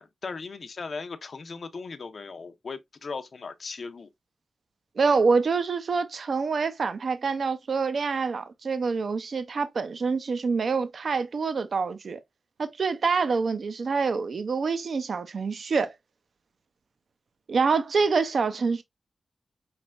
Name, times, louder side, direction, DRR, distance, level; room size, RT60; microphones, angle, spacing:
voice 1, 0.0-4.1, left 4 dB, 60° left, 0.4 m, -38 dB
voice 2, 5.0-12.2 12.6-15.9 17.5-18.8, right 4 dB, 65° right, 0.4 m, -26 dB
4.2 x 3.3 x 2.3 m
wide cardioid pair, 125°, 0 cm